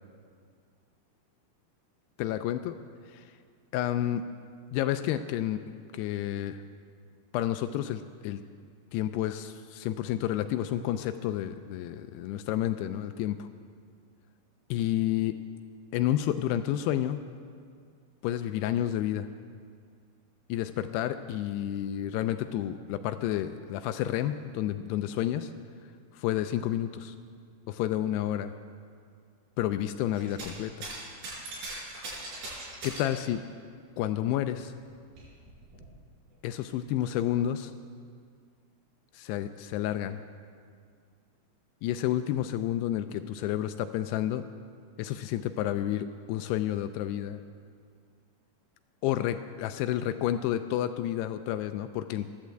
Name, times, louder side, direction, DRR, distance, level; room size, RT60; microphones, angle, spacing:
voice 1, 2.2-2.8 3.1-3.3 3.7-4.2 4.7-5.6 5.9-6.6 7.3-8.4 8.9-13.5 14.7-15.4 15.9-17.2 18.2-19.3 20.5-25.5 26.1-27.2 27.7-28.5 29.6-30.9 32.8-33.4 34.0-34.7 36.4-37.7 39.1-40.2 41.8-44.4 45.0-47.4 49.0-52.4, left 12 dB, 85° left, 9 dB, 2.5 m, -30 dB
sound 1, 30.1-30.6 30.8-33.2 34.3-34.4 34.8-35.8 36.7-36.8, right 2 dB, 65° right, 6.6 m, -40 dB
15.0 x 11.5 x 7.7 m, 2.1 s
omnidirectional pair, 4.8 m